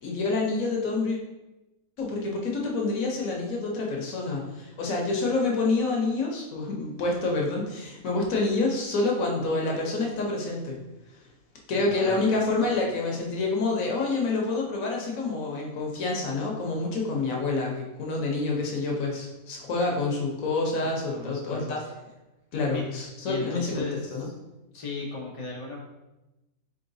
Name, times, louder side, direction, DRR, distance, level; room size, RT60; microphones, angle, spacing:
voice 1, 0.0-1.2 2.0-10.8 11.7-21.8 22.5-24.2, left 3 dB, 65° left, -1 dB, 1.2 m, -27 dB
voice 2, 11.8-12.2 20.8-21.8 22.7-22.8 23.2-24.3 24.7-25.8, left 3 dB, 45° left, -1 dB, 0.4 m, -36 dB
4.1 x 3.9 x 2.6 m, 1.0 s
omnidirectional pair, 1.6 m